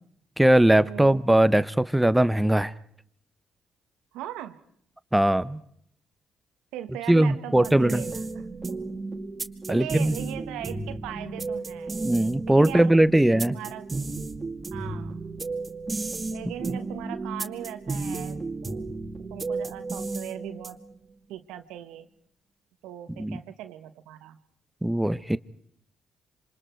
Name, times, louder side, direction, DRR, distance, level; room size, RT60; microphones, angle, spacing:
voice 1, 0.4-2.7 5.1-5.6 7.1-8.0 9.7-10.1 12.0-13.6 23.2-23.4 24.8-25.4, right 1 dB, 10° right, 0.9 m, -20 dB
voice 2, 0.9-1.2 4.1-4.6 6.7-8.8 9.7-11.9 12.5-12.9 13.3-13.9 14.7-15.2 16.3-18.9 19.2-20.8 21.3-22.1 22.8-24.4, right 12 dB, 80° right, 1.3 m, -39 dB
sound 1, 7.5-21.0, right 3 dB, 30° right, 2.2 m, -33 dB
27.5 x 26.0 x 4.6 m
hypercardioid pair, 45°, 0 cm